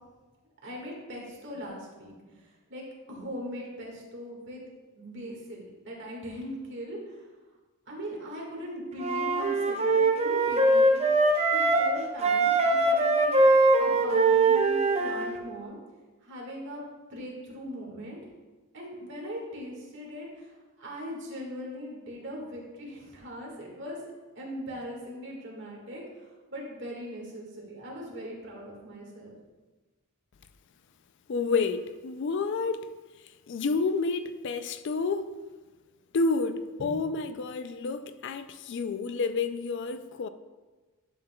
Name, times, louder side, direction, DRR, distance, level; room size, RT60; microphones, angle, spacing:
voice 1, 0.6-4.6 4.9-7.2 7.9-11.1 11.5-13.3 13.8-15.8 16.2-16.8 17.1-18.2 18.7-20.5 20.8-24.0 24.4-29.4 36.8-36.9, equal, 55° right, 1.8 m, -40 dB
Wind instrument woodwind instrument, 9.0-11.9 12.2-15.4, right 2 dB, 30° right, 0.6 m, -22 dB
voice 2, 31.3-32.9 33.5-35.3 36.1-40.3, left 4 dB, 55° left, 0.3 m, -29 dB
10.5 x 5.6 x 2.3 m
head